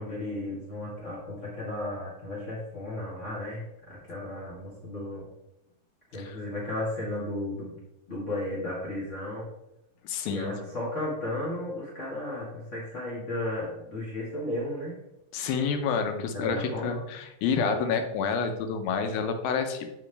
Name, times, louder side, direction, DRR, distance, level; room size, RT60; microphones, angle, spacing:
voice 1, 0.0-5.3 6.1-7.7 8.1-9.5 10.2-15.0 16.3-17.0, left 1 dB, 65° left, -6 dB, 0.7 m, -34 dB
voice 2, 10.0-10.5 15.3-19.9, left 5 dB, 90° left, 7 dB, 2.6 m, -29 dB
7.2 x 5.6 x 3.3 m, 0.90 s
omnidirectional pair, 4.1 m